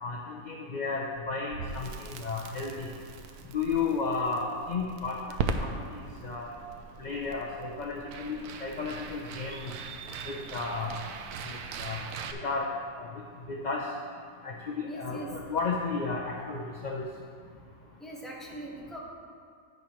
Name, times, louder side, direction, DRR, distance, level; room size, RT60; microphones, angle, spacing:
voice 1, 0.0-2.9 3.5-6.5 7.0-9.7 10.2-11.0 11.4-12.0 12.4-12.7 13.0-13.1 13.5-13.9 14.4-17.1, left 4 dB, 50° left, -1 dB, 0.5 m, -33 dB
Crackle, 1.5-12.3, right 5 dB, 85° right, 1.1 m, -39 dB
voice 2, 14.9-15.3 18.0-19.0, right 1 dB, ahead, -4 dB, 1.2 m, -41 dB
10.5 x 8.5 x 3.1 m, 2.1 s
omnidirectional pair, 1.6 m